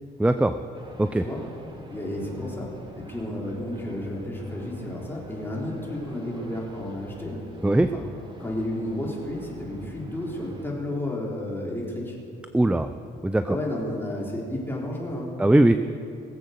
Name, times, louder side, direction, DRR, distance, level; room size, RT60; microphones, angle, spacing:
voice 1, 0.2-0.6 1.0-1.2 7.6-7.9 12.5-12.9 13.2-13.6 15.4-15.7, right 1 dB, 5° right, 10 dB, 0.4 m, -20 dB
sound 1, 0.7-10.7, right 1 dB, 25° right, 2.0 m, -46 dB
voice 2, 1.9-7.4 7.9-8.0 8.4-12.2 13.5-15.4, left 1 dB, 10° left, -4 dB, 3.9 m, -32 dB
20.0 x 7.7 x 6.7 m, 2.4 s
cardioid pair, 90°, 20 cm